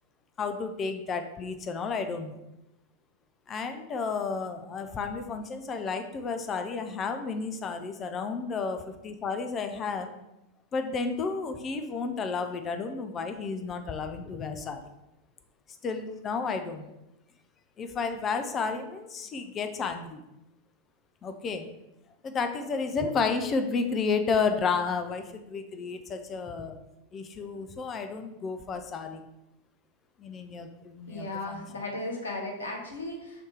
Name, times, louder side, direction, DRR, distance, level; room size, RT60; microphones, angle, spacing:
voice 1, 0.4-2.4 3.5-10.1 10.7-14.8 15.8-16.9 17.8-20.2 21.2-21.7 22.2-26.8 27.1-29.2 30.2-31.6, left 5 dB, 25° left, 7 dB, 0.4 m, -32 dB
voice 2, 31.1-33.5, left 2 dB, 70° left, 0 dB, 0.9 m, -36 dB
3.3 x 2.8 x 4.6 m, 0.90 s
figure-of-eight pair, 90°, 0 cm